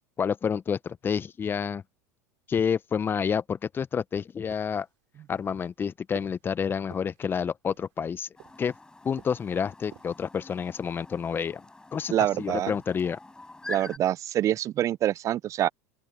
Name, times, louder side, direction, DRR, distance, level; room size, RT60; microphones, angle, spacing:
voice 1, 0.2-1.8 2.5-4.9 5.3-8.3 8.6-8.7 9.0-11.6 11.9-13.2, left 7 dB, 25° left, 1.2 m, -29 dB
sound 1, 4.5-4.9 5.3-5.7 6.1-6.5 6.9-7.3 7.7-8.0 8.4-8.8 9.2-9.5 9.8-10.2 10.6-10.7, right 25 dB, 55° right, 7.7 m, -50 dB
Chirp tweet, 8.4-14.0, left 2 dB, 10° left, 5.4 m, -45 dB
voice 2, 12.1-12.7 13.7-15.7, right 12 dB, 40° right, 0.8 m, -26 dB
open air
hypercardioid pair, 85°, 8 cm